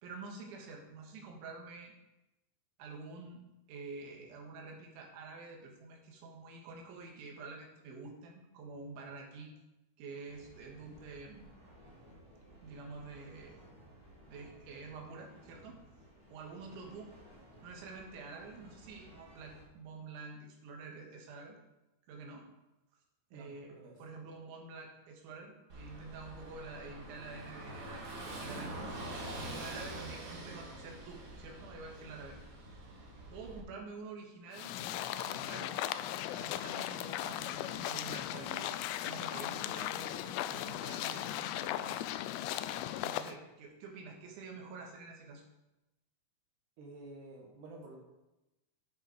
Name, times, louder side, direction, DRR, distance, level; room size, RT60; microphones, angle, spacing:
voice 1, 0.0-1.9 2.8-3.4 3.7-9.5 10.0-11.6 12.6-13.6 14.3-15.8 16.3-17.1 17.6-21.6 22.1-22.5 23.3-29.0 29.3-32.4 33.3-35.8 36.3-38.8 39.0-42.0 43.0-45.4, right 4 dB, 80° right, 0 dB, 4.0 m, -48 dB
sound 1, 10.2-19.6, right 1 dB, 20° left, 3.8 m, -58 dB
voice 2, 23.3-24.0 46.8-48.0, right 2 dB, 60° right, 0 dB, 2.3 m, -51 dB
Car passing by / Engine, 25.7-33.6, right 1 dB, 40° right, 1.8 m, -45 dB
sound 2, 34.5-43.3, left 13 dB, 85° left, 2.4 m, -37 dB
11.0 x 6.9 x 4.9 m, 0.97 s
omnidirectional pair, 5.3 m